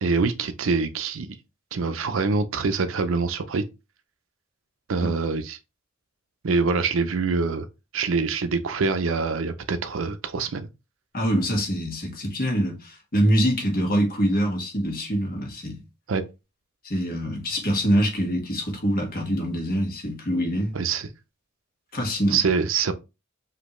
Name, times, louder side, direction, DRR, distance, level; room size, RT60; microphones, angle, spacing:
voice 1, 0.0-1.3 1.7-3.6 4.9-5.6 6.4-7.7 7.9-10.7 16.1-16.2 20.7-21.1 22.3-22.9, right 4 dB, 70° right, 0.5 m, -25 dB
voice 2, 11.1-15.8 16.8-20.7 21.9-22.4, equal, 45° left, 1.5 m, -24 dB
5.2 x 2.8 x 3.0 m
head